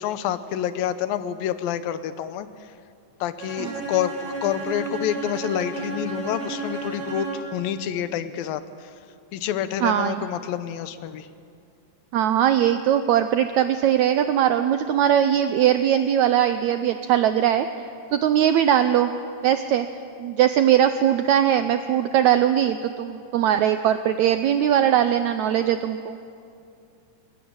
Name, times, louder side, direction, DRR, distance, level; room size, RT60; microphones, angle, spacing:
voice 1, 0.0-2.7 3.2-8.9 9.3-11.3, left 10 dB, 85° left, 13 dB, 2.7 m, -28 dB
Bowed string instrument, 3.4-7.6, right 2 dB, 50° right, 7.6 m, -32 dB
voice 2, 9.8-10.2 12.1-17.7 18.1-19.1 19.4-19.9 20.2-26.2, right 10 dB, 80° right, 10 dB, 1.6 m, -20 dB
22.0 x 19.5 x 8.8 m, 2.5 s
omnidirectional pair, 4.0 m